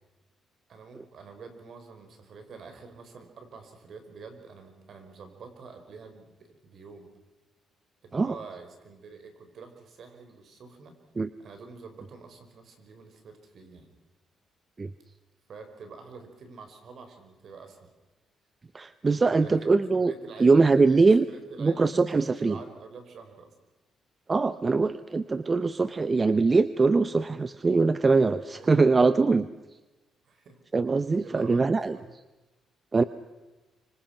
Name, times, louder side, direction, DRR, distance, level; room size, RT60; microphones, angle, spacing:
voice 1, 0.7-7.1 8.0-10.9 11.4-13.9 15.5-17.9 19.2-20.9 21.3-23.5 28.5-28.9 30.2-30.6 31.2-31.6 31.9-32.1, right 4 dB, 60° right, 6 dB, 5.2 m, -46 dB
voice 2, 18.7-20.1 20.4-21.2 21.6-22.6 24.3-29.5 30.7-32.0 32.9-33.0, right 4 dB, 30° right, 13 dB, 0.8 m, -22 dB
25.5 x 25.0 x 6.0 m, 1.1 s
cardioid pair, 90°, 0 cm